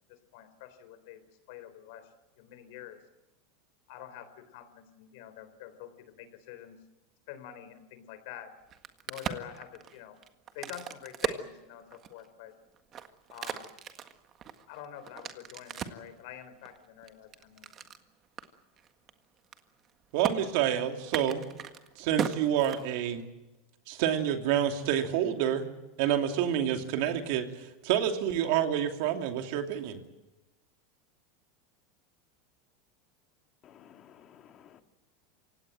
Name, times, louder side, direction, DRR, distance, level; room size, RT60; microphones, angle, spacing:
voice 1, 0.1-1.2 1.5-2.1 2.4-3.0 3.9-6.8 7.3-8.5 9.1-10.2 10.5-12.5 13.3-13.7 14.7-17.9, left 10 dB, 70° left, 11 dB, 3.9 m, -47 dB
Crack, 8.6-12.3 12.8-16.1 16.6-18.0 18.4-18.5 18.8-19.1 19.4-19.9 20.2-20.3 21.0-23.2, right 8 dB, 35° right, 1.7 m, -37 dB
voice 2, 20.1-21.4 22.0-23.2 23.9-25.7 26.0-30.0, right 10 dB, 65° right, 5 dB, 2.8 m, -28 dB
voice 3, 33.6-34.8, left 9 dB, 35° left, 7 dB, 1.9 m, -55 dB
27.5 x 17.0 x 7.8 m, 1.0 s
supercardioid pair, 130°, 0 cm